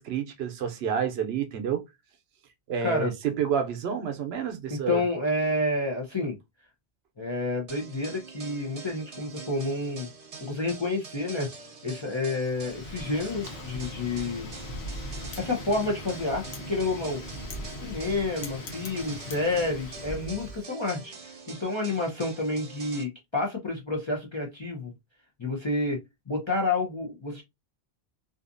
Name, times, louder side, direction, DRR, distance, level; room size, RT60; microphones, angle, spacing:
voice 1, 0.0-1.8 2.7-5.0, right 7 dB, 75° right, 0.8 m, -29 dB
voice 2, 2.8-3.1 4.7-6.4 7.2-10.1 10.4-11.5 11.8-14.5 15.4-17.2 17.8-24.9 25.4-27.4, left 2 dB, 40° left, 0.4 m, -29 dB
sound 1, 7.7-23.0, right 4 dB, 45° right, 0.5 m, -45 dB
Wind, 12.5-20.6, left 1 dB, 75° left, 0.9 m, -40 dB
2.6 x 2.4 x 2.4 m
omnidirectional pair, 1.1 m